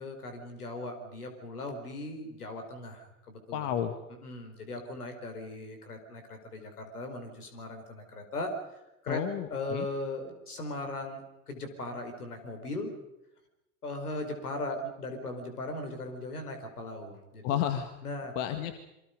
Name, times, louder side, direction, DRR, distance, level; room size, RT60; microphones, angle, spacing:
voice 1, 0.0-3.7 4.2-8.5 9.0-9.2 9.5-12.9 13.8-17.4 18.0-18.3, left 2 dB, 85° left, 6 dB, 4.9 m, -38 dB
voice 2, 3.5-4.0 9.1-9.9 17.4-17.9 18.4-18.8, left 10 dB, 55° left, 8 dB, 1.9 m, -31 dB
27.5 x 24.0 x 5.3 m, 0.90 s
figure-of-eight pair, 80°, 44 cm